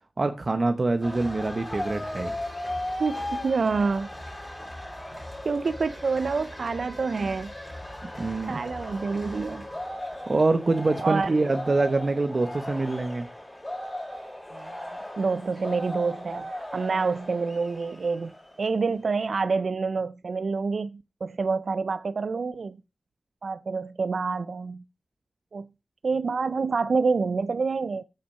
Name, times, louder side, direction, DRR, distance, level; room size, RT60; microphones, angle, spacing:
voice 1, 0.2-2.3 8.2-8.6 10.3-13.3, right 3 dB, 50° right, 0.8 m, -25 dB
sound 1, 1.0-18.8, left 1 dB, 20° left, 4.9 m, -37 dB
voice 2, 3.0-4.1 5.4-7.5 8.5-9.7 11.0-11.3 14.5-18.3 18.6-22.8 23.4-24.8 25.5-25.7 26.0-28.0, right 4 dB, 85° right, 0.3 m, -27 dB
8.7 x 5.7 x 5.5 m
wide cardioid pair, 85°, 0 cm